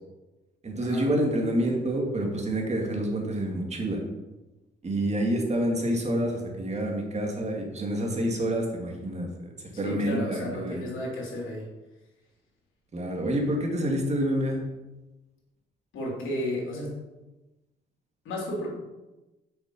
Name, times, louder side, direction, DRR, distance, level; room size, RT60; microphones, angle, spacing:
voice 1, 0.6-4.0 4.8-9.5 9.8-10.8 12.9-14.6, right 1 dB, 35° right, 1 dB, 2.3 m, -28 dB
voice 2, 9.7-11.7 15.9-17.0 18.2-18.7, left 1 dB, 80° left, -3 dB, 3.3 m, -33 dB
7.0 x 6.1 x 5.4 m, 1.1 s
cardioid pair, 90°, 20 cm